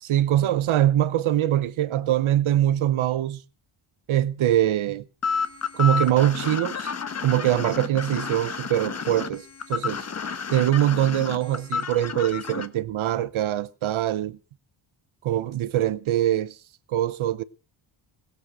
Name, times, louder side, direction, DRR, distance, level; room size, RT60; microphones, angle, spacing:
voice 1, 0.0-3.4 4.1-5.0 5.7-6.9 7.2-10.0 10.5-14.4 15.2-16.6 16.9-17.4, right 12 dB, 80° right, 0.9 m, -23 dB
sound 1, 5.2-12.7, left 6 dB, 30° left, 1.1 m, -30 dB
19.5 x 8.2 x 6.2 m
wide cardioid pair, 170°, 48 cm